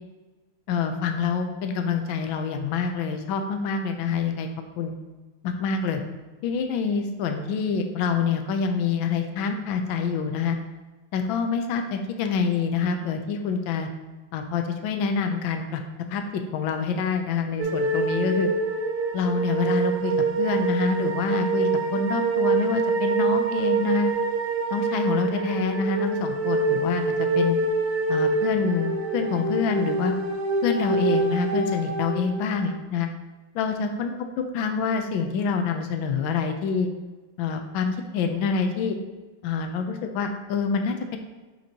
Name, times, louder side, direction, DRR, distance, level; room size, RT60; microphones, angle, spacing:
voice 1, 0.7-4.5 4.8-4.9 5.4-6.0 6.4-10.6 11.1-13.9 14.3-15.8 16.1-18.5 19.1-24.1 24.7-27.6 28.1-30.1 30.6-33.1 33.5-36.9 37.4-39.0 39.4-41.2, left 5 dB, 70° left, 5 dB, 1.3 m, -26 dB
sound 1, 17.6-32.7, right 3 dB, 80° right, 0.7 m, -25 dB
8.8 x 4.4 x 2.8 m, 1.2 s
omnidirectional pair, 2.4 m